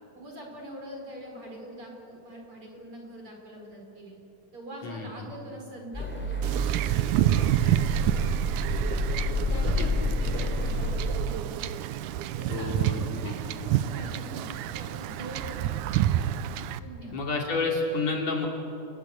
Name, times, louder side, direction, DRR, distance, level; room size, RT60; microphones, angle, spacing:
voice 1, 0.1-4.2 4.5-6.6 6.9-7.9 9.4-11.6 12.3-16.3 16.8-17.2, equal, 40° right, 1 dB, 5.2 m, -43 dB
voice 2, 4.8-5.3 9.5-9.9 12.5-13.3 17.1-18.5, left 3 dB, 55° left, 0 dB, 3.9 m, -30 dB
sound 1, 5.9-11.2, equal, 5° left, 3.5 m, -29 dB
Wind / Ocean / Boat Water vehicle, 6.4-16.8, right 12 dB, 75° right, 2.0 m, -29 dB
29.5 x 20.5 x 8.1 m, 2.8 s
omnidirectional pair, 3.9 m